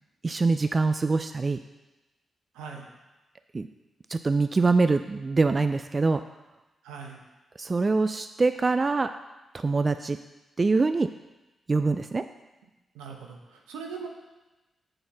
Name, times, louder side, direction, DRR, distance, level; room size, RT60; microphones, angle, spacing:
voice 1, 0.2-1.6 3.5-3.7 4.1-6.2 7.6-9.1 9.5-10.2 10.6-11.1 11.7-12.2, right 3 dB, 40° right, 10 dB, 0.3 m, -24 dB
voice 2, 2.5-2.9 6.8-7.2 12.9-14.1, right 5 dB, 85° right, 2 dB, 0.9 m, -40 dB
7.7 x 4.3 x 5.9 m, 1.1 s
hypercardioid pair, 40°, 0 cm